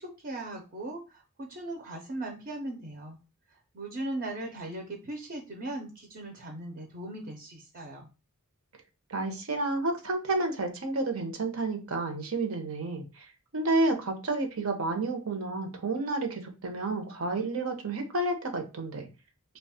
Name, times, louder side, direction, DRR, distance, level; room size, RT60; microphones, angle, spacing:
voice 1, 0.0-3.2 3.7-8.1, right 1 dB, 50° right, 2 dB, 0.7 m, -38 dB
voice 2, 9.1-13.3 13.5-19.1, right 2 dB, 80° right, 4 dB, 0.9 m, -30 dB
3.0 x 2.3 x 4.1 m, 0.30 s
head